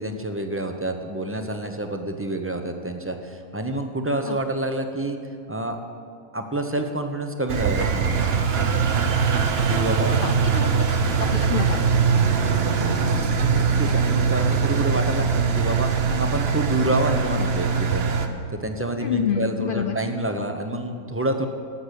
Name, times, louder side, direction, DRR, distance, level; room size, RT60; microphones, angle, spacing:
voice 1, 0.0-5.2 5.5-5.8 6.3-8.2 9.7-10.2 13.4-18.0 18.5-21.5, right 1 dB, 15° right, 5 dB, 0.6 m, -28 dB
Engine, 7.5-18.3, right 5 dB, 50° right, 1.0 m, -22 dB
voice 2, 10.2-10.9 11.3-11.8 19.0-20.0, left 7 dB, 70° left, 7 dB, 0.5 m, -27 dB
13.0 x 6.6 x 8.2 m, 2.3 s
omnidirectional pair, 1.5 m